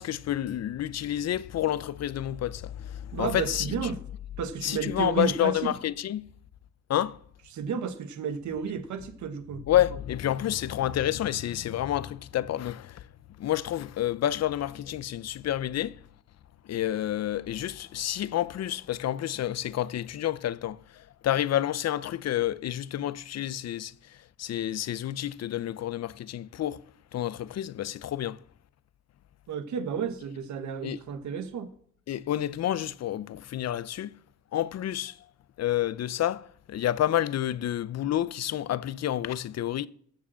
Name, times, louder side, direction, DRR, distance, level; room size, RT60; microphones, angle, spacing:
voice 1, 0.0-3.7 4.6-6.2 6.9-7.2 9.7-13.0 13.4-16.0 16.7-26.8 27.1-28.4 30.8-31.0 32.1-34.1 34.5-35.2 35.6-39.9, left 12 dB, 60° left, 0.6 m, -29 dB
voice 2, 3.1-4.0 4.4-5.7 7.5-9.6 29.5-31.7, right 7 dB, 75° right, 1.2 m, -32 dB
14.0 x 4.8 x 7.5 m
cardioid pair, 75°, 29 cm